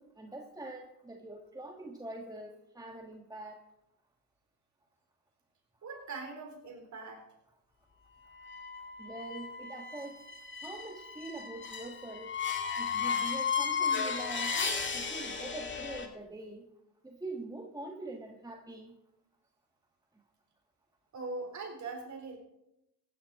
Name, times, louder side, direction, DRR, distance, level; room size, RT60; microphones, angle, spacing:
voice 1, 0.0-3.6 9.0-10.2 10.5-12.4 12.8-14.5 14.9-16.7 17.0-18.9, right 2 dB, 10° right, 2 dB, 1.5 m, -44 dB
voice 2, 5.8-7.2 21.1-22.4, right 3 dB, 40° right, 3 dB, 4.2 m, -41 dB
sound 1, 8.3-16.1, left 6 dB, 25° left, 2.0 m, -35 dB
15.5 x 11.0 x 4.1 m, 0.86 s
supercardioid pair, 80°, 45 cm